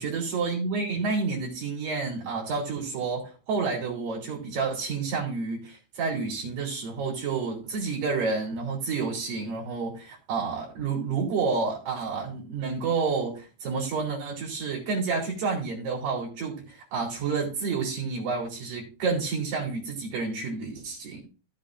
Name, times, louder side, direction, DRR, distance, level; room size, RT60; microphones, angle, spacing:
voice 1, 0.0-21.2, right 4 dB, 70° right, -2 dB, 4.9 m, -29 dB
16.0 x 8.1 x 2.5 m, 0.33 s
omnidirectional pair, 4.0 m